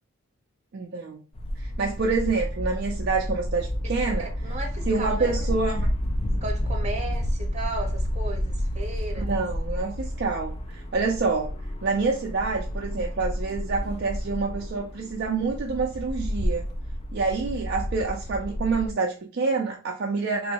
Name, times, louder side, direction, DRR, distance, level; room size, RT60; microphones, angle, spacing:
voice 1, 0.7-1.2 1.6-4.3 4.9-5.9 9.1-11.5 11.8-16.7 17.1-20.5, right 4 dB, 50° right, 0.4 m, -27 dB
sound 1, 1.3-18.9, equal, 30° left, 0.3 m, -30 dB
voice 2, 3.8-5.3 6.4-9.3, right 2 dB, 30° right, 0.8 m, -35 dB
3.1 x 2.6 x 2.8 m
head